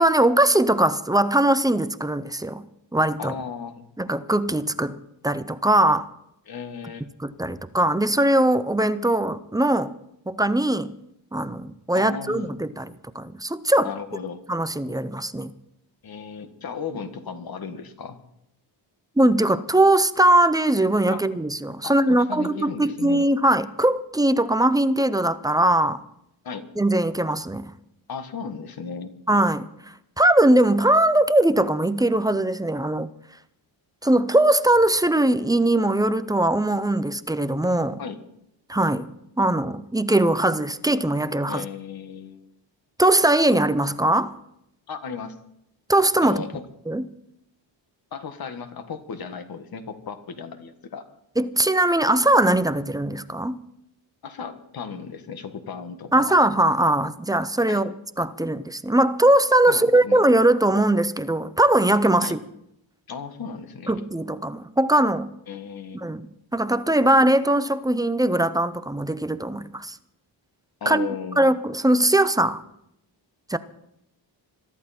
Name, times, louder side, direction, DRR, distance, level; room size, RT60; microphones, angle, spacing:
voice 1, 0.0-2.6 2.9-3.4 4.0-5.0 5.2-6.1 7.2-9.9 10.3-10.9 11.3-13.9 14.5-15.5 19.2-26.0 26.8-27.7 29.3-29.7 30.2-33.1 34.0-38.0 38.7-39.1 39.4-41.6 43.0-44.3 45.9-46.4 46.9-47.1 51.4-53.6 56.1-57.9 58.2-62.4 63.9-65.3 66.0-70.0 70.9-71.1 71.4-72.6 73.5-73.6, right 1 dB, 10° right, 0.5 m, -20 dB
voice 2, 3.2-3.8 6.5-7.1 11.9-12.5 13.8-14.4 16.0-18.2 21.1-21.2 21.8-23.2 26.4-26.6 28.1-29.1 38.0-38.2 41.5-42.5 44.9-45.4 46.2-46.6 48.1-51.1 54.2-56.3 57.7-57.8 59.7-60.2 62.2-62.3 63.1-64.0 65.5-66.0 70.8-71.6, left 6 dB, 50° left, 1.7 m, -35 dB
22.5 x 14.0 x 4.3 m
wide cardioid pair, 155°, 45 cm